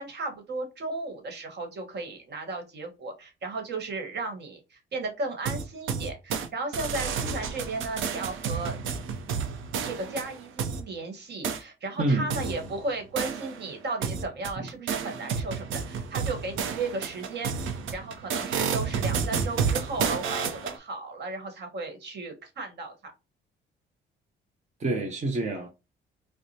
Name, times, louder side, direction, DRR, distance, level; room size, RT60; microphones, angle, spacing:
voice 1, 0.0-8.8 9.8-23.1, right 3 dB, 60° right, 1.4 m, -35 dB
sound 1, 5.4-6.5 6.7-10.8 11.4-11.6 12.3-13.7 14.0-20.8, right 6 dB, 80° right, 0.7 m, -31 dB
voice 2, 12.0-12.3 14.6-14.7 24.8-25.7, right 2 dB, 35° right, 0.8 m, -27 dB
4.7 x 2.1 x 2.7 m
cardioid pair, 90°, 20 cm